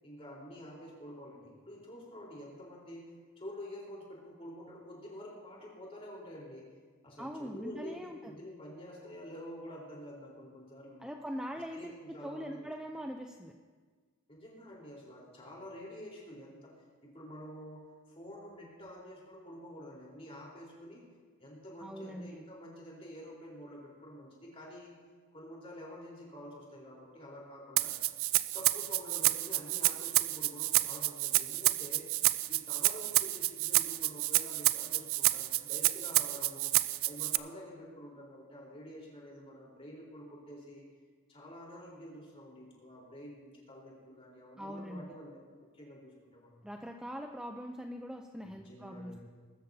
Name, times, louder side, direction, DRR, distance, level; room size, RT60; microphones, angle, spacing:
voice 1, 0.0-6.6 7.0-11.1 11.7-12.7 14.3-16.7 17.0-21.1 21.4-25.0 25.3-28.0 28.5-32.1 32.5-36.7 37.0-40.8 41.3-45.4 45.7-46.6 48.4-49.2, equal, 30° left, -3 dB, 4.0 m, -48 dB
voice 2, 7.2-8.3 11.0-11.9 12.2-13.5 21.8-22.4 44.6-45.0 46.6-49.2, equal, 5° right, 3 dB, 0.5 m, -42 dB
Rattle (instrument), 27.8-37.4, right 17 dB, 85° right, 0.4 m, -29 dB
21.0 x 13.0 x 2.8 m, 1.5 s
head